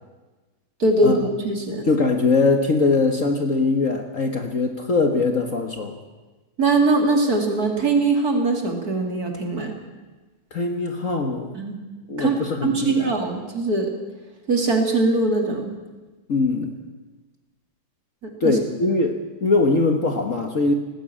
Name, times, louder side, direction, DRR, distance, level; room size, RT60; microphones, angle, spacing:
voice 1, 0.8-1.9 6.6-9.7 11.5-11.8 12.2-13.9 14.5-15.7 18.2-18.6, right 3 dB, 45° right, 3 dB, 3.2 m, -21 dB
voice 2, 1.9-5.9 10.5-11.5 12.1-13.1 16.3-16.7 18.4-20.7, left 3 dB, 40° left, 5 dB, 1.6 m, -21 dB
19.0 x 15.5 x 8.8 m, 1.2 s
omnidirectional pair, 2.3 m